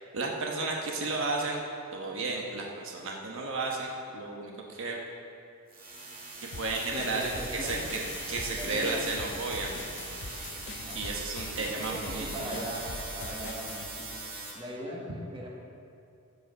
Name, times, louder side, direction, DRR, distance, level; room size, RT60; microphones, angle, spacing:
voice 1, 0.1-1.6 1.9-5.0 6.5-7.3 7.6-8.0 8.3-9.7 10.9-12.5, right 3 dB, 60° right, -1 dB, 1.2 m, -33 dB
sound 1, 5.7-14.5, right 3 dB, 40° right, 2.1 m, -41 dB
sound 2, 6.5-13.9, left 3 dB, 55° left, 0.7 m, -43 dB
voice 2, 6.9-7.9 8.3-9.2 10.7-11.0 11.5-14.1 14.5-15.5, equal, 25° right, -2 dB, 1.5 m, -40 dB
14.5 x 5.3 x 6.3 m, 2.5 s
head